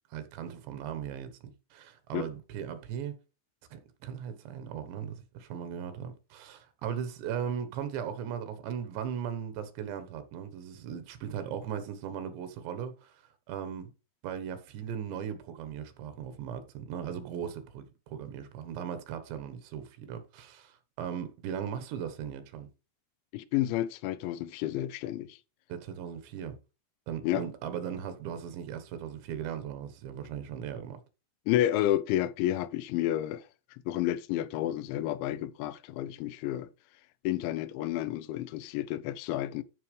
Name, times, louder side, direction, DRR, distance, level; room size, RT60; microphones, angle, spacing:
voice 1, 0.1-3.2 3.7-13.1 13.5-13.9 14.2-22.7 25.7-26.6 27.1-31.0, right 8 dB, 80° right, 3.3 m, -38 dB
voice 2, 23.3-25.4 27.2-27.4 31.5-33.4 33.7-36.7 37.2-39.6, left 13 dB, 90° left, 3.0 m, -30 dB
13.5 x 5.5 x 3.2 m
omnidirectional pair, 5.1 m